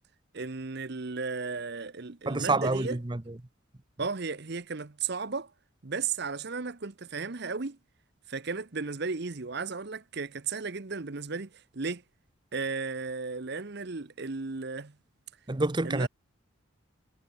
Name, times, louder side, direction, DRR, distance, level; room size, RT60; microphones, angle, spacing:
voice 1, 0.3-3.0 4.0-5.5 5.8-7.8 8.3-12.0 12.5-14.9 15.8-16.1, right 4 dB, 50° right, 0.9 m, -35 dB
voice 2, 2.3-3.4 15.5-16.1, right 2 dB, 20° right, 0.7 m, -28 dB
head